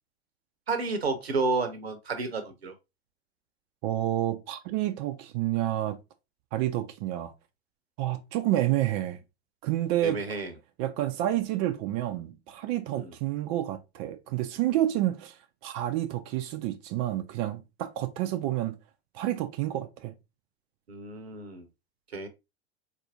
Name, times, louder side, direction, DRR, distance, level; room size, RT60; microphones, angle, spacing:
voice 1, 0.7-2.7 10.0-10.5 12.9-13.1 20.9-21.7 22.1-22.3, right 3 dB, 80° right, 0.7 m, -31 dB
voice 2, 3.8-6.0 6.5-7.3 8.0-9.2 9.6-10.4 10.8-18.8 19.1-20.1, right 13 dB, 35° right, 0.4 m, -29 dB
4.1 x 2.5 x 2.6 m
figure-of-eight pair, 85°, 31 cm